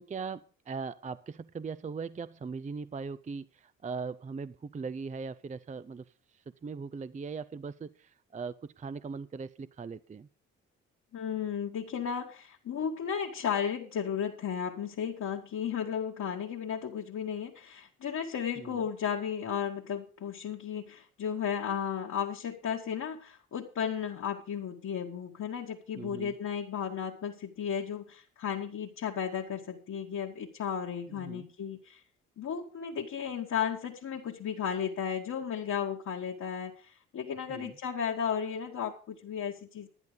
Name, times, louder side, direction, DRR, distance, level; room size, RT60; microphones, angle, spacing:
voice 1, 0.0-6.0 6.3-10.3 18.6-18.8 26.0-26.3 31.1-31.5 37.5-37.7, right 5 dB, 20° right, 0.5 m, -40 dB
voice 2, 11.1-32.0 32.4-39.9, left 8 dB, 55° left, 1.7 m, -34 dB
11.0 x 10.5 x 5.1 m
hypercardioid pair, 50°, 33 cm